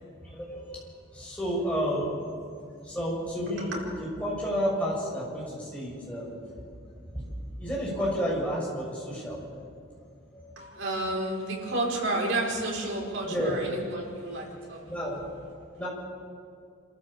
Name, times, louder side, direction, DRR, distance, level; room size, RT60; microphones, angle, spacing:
voice 1, 0.2-0.6 1.1-2.2 2.6-6.6 7.1-7.2 7.6-9.3 10.3-10.5 13.3-13.5 14.8-15.2 15.8-15.9, equal, 5° left, -5 dB, 6.7 m, -31 dB
voice 2, 10.5-15.0, right 2 dB, 80° right, -2 dB, 5.1 m, -31 dB
27.5 x 14.5 x 7.4 m, 2.3 s
head